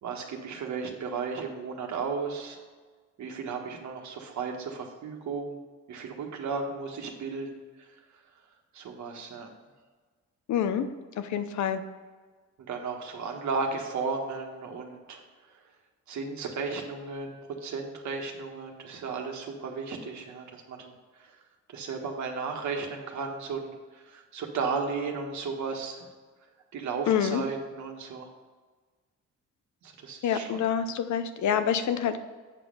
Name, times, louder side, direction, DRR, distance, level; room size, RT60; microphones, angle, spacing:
voice 1, 0.0-2.6 3.2-5.6 5.9-7.6 8.7-9.5 12.7-15.2 15.5-15.6 16.1-20.9 21.2-21.4 21.7-26.1 26.7-28.3 29.8-30.6, right 4 dB, 70° right, 2 dB, 1.5 m, -34 dB
voice 2, 10.5-10.9 11.2-11.8 27.1-27.4 30.2-32.2, left 8 dB, 70° left, 10 dB, 0.7 m, -27 dB
8.3 x 5.4 x 5.3 m, 1.4 s
cardioid pair, 90°, 30 cm